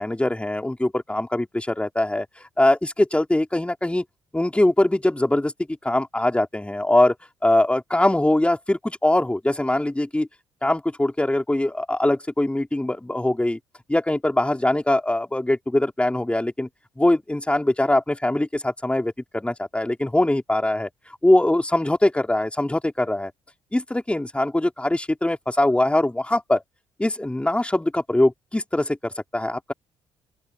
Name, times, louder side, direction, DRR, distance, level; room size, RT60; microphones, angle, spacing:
voice 1, 0.0-4.0 4.3-5.5 5.8-7.1 7.4-10.3 10.6-13.6 13.9-16.7 17.0-23.3 23.7-26.6 27.0-29.7, left 1 dB, 10° left, 3.6 m, -22 dB
open air
figure-of-eight pair, 45°, 12 cm